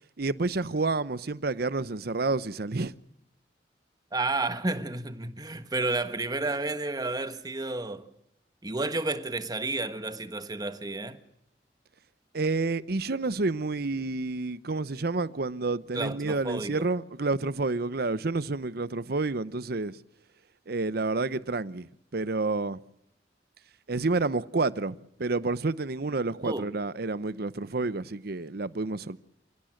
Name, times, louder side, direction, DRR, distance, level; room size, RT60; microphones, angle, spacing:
voice 1, 0.2-2.9 12.3-20.0 20.7-22.8 23.9-29.2, right 3 dB, 60° right, 0.8 m, -29 dB
voice 2, 4.1-8.1 8.6-11.2 15.9-16.9 26.4-26.7, right 2 dB, 20° right, 1.4 m, -31 dB
28.5 x 17.0 x 6.5 m
head